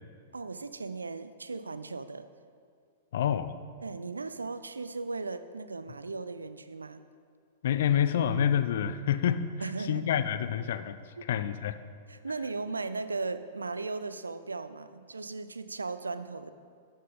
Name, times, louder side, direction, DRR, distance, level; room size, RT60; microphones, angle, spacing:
voice 1, 0.3-2.3 3.8-7.0 9.6-10.1 11.2-11.3 12.1-16.5, right 3 dB, 75° right, 12 dB, 0.4 m, -37 dB
voice 2, 3.1-3.6 7.6-9.4 9.9-11.0 11.3-11.8, left 9 dB, 55° left, 12 dB, 0.4 m, -27 dB
12.0 x 6.4 x 3.9 m, 2.2 s
figure-of-eight pair, 100°, 0 cm